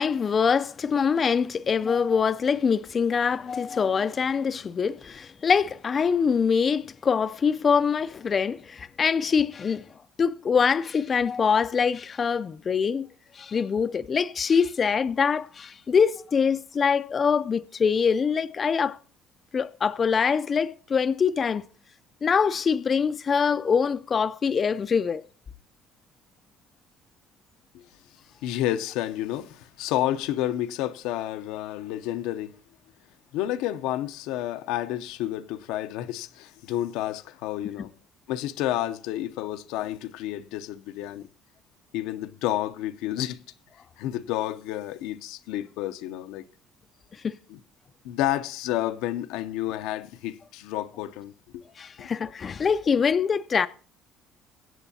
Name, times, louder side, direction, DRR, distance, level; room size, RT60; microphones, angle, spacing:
voice 1, 0.0-9.8 10.2-13.1 13.3-19.0 19.5-21.6 22.2-25.2 47.1-47.4 51.8-53.7, left 6 dB, 35° left, 0.4 m, -24 dB
voice 2, 28.4-32.5 33.3-37.9 38.3-41.3 41.9-43.4 44.0-46.5 47.5-47.6 48.0-51.6 52.0-52.1, left 13 dB, 85° left, 0.6 m, -30 dB
22.0 x 8.2 x 2.7 m
cardioid pair, 100°, 0 cm